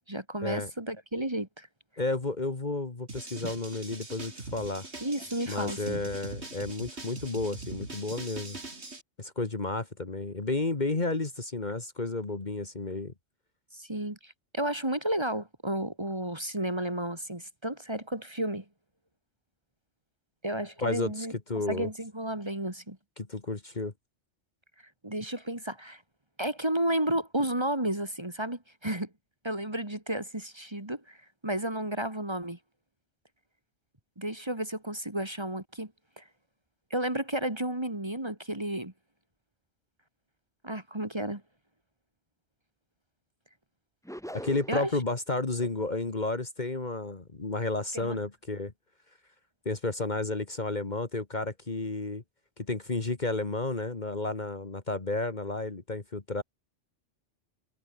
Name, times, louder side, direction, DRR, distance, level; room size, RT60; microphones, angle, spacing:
voice 1, 0.1-1.7 3.4-3.5 5.0-6.0 13.7-18.6 20.4-21.3 21.7-23.0 25.0-26.0 26.4-29.1 29.4-31.2 31.4-32.6 34.2-35.9 36.2-36.3 36.9-38.9 40.6-41.4 44.7-44.9 47.9-48.2, right 1 dB, 20° right, 2.3 m, -32 dB
voice 2, 2.0-4.9 5.5-8.6 9.2-13.1 20.8-21.9 23.2-23.9 44.3-48.7 49.7-52.2 52.6-56.4, left 2 dB, 40° left, 1.9 m, -32 dB
sound 1, 3.1-9.0, right 2 dB, 60° right, 3.9 m, -42 dB
sound 2, 44.1-45.0, equal, ahead, 3.3 m, -41 dB
omnidirectional pair, 1.2 m